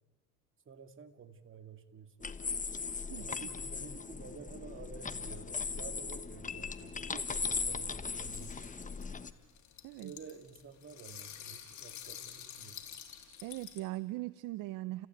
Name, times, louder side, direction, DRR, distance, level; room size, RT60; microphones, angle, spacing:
voice 1, 0.7-2.3 3.2-8.8 10.0-12.9, right 6 dB, 40° right, 7 dB, 2.2 m, -51 dB
sound 1, 2.2-9.3, left 5 dB, 25° left, 1.2 m, -38 dB
voice 2, 3.1-3.5 9.8-10.1 13.4-15.1, right 18 dB, 75° right, 16 dB, 0.6 m, -40 dB
sound 2, 7.6-13.8, left 10 dB, 60° left, 3.4 m, -49 dB
30.0 x 15.0 x 9.2 m, 1.3 s
supercardioid pair, 85°, 33 cm